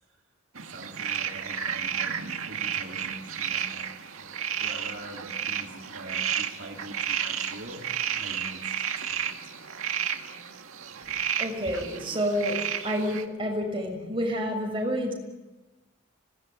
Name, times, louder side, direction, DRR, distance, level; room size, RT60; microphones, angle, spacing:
voice 1, 0.6-3.9 4.2-9.4, right 1 dB, 55° right, -1 dB, 3.6 m, -44 dB
sound 1, 0.6-13.2, right 8 dB, 75° right, 2.0 m, -32 dB
voice 2, 11.4-15.1, equal, 25° right, 1 dB, 6.6 m, -29 dB
25.5 x 19.5 x 9.6 m, 1.1 s
head